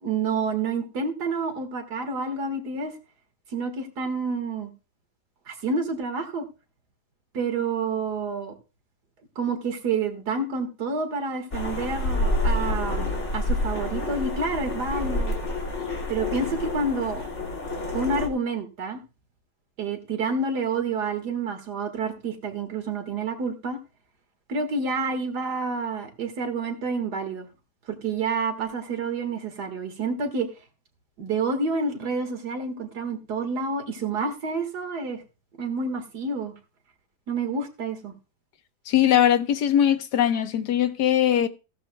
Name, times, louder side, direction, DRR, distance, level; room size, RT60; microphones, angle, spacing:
voice 1, 0.0-2.9 3.5-4.7 5.5-6.5 7.3-8.5 9.4-15.3 16.1-17.2 17.9-19.0 19.8-23.8 24.5-27.5 27.9-30.5 31.2-35.2 35.6-36.5 37.3-38.1, right 4 dB, 80° right, 2.3 m, -28 dB
sound 1, 11.5-18.3, left 2 dB, 45° left, 2.5 m, -28 dB
voice 2, 38.9-41.5, left 10 dB, 85° left, 1.6 m, -21 dB
15.5 x 12.5 x 2.2 m
omnidirectional pair, 1.7 m